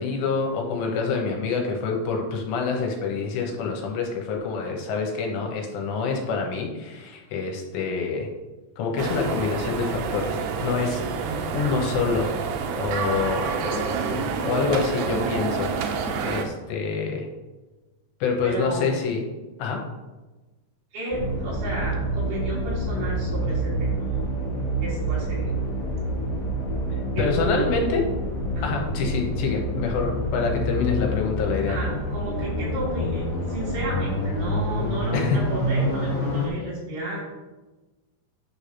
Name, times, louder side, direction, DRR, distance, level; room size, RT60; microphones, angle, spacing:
voice 1, 0.0-8.3 8.8-11.0 11.5-12.3 12.8-15.7 16.2-17.3 18.2-19.2 19.6-19.8 27.2-28.0 28.6-31.8 35.1-35.4, left 5 dB, 80° left, 1 dB, 3.4 m, -26 dB
sound 1, 9.0-16.5, right 5 dB, 85° right, 2.9 m, -28 dB
voice 2, 18.4-18.9 20.9-24.0 24.8-25.5 27.2-27.7 28.5-28.8 31.7-37.2, right 1 dB, 65° right, -7 dB, 4.9 m, -32 dB
sound 2, 21.1-36.5, equal, 45° left, 1.0 m, -27 dB
9.8 x 3.4 x 5.7 m, 1.2 s
omnidirectional pair, 5.0 m